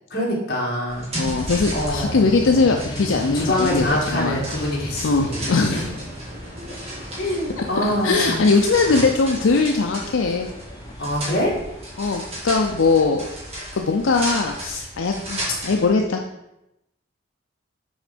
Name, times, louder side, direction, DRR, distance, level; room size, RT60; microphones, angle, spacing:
voice 1, 0.1-1.1 1.7-2.2 3.3-5.9 7.1-8.5 11.0-11.5, left 1 dB, 50° left, -4 dB, 1.9 m, -25 dB
sound 1, 0.9-15.9, right 1 dB, 30° right, 2.0 m, -34 dB
voice 2, 1.2-3.9 4.1-4.4 5.0-5.9 7.8-10.5 12.0-13.2 13.8-16.2, left 4 dB, 80° left, 2 dB, 0.5 m, -20 dB
sound 2, 1.2-13.0, left 1 dB, 20° left, 0.5 m, -36 dB
sound 3, 4.5-10.6, right 1 dB, 50° right, 1.2 m, -42 dB
6.3 x 4.3 x 5.1 m, 0.88 s
head